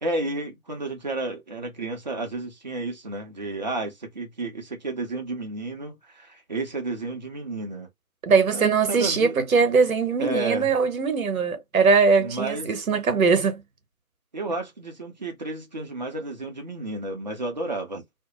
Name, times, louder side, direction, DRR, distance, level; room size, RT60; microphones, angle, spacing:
voice 1, 0.0-7.9 8.5-9.4 10.2-10.7 12.2-12.7 14.3-18.0, right 2 dB, 30° right, 0.5 m, -31 dB
voice 2, 8.2-13.6, right 5 dB, 65° right, 0.9 m, -21 dB
2.4 x 2.1 x 2.9 m
figure-of-eight pair, 150°, 44 cm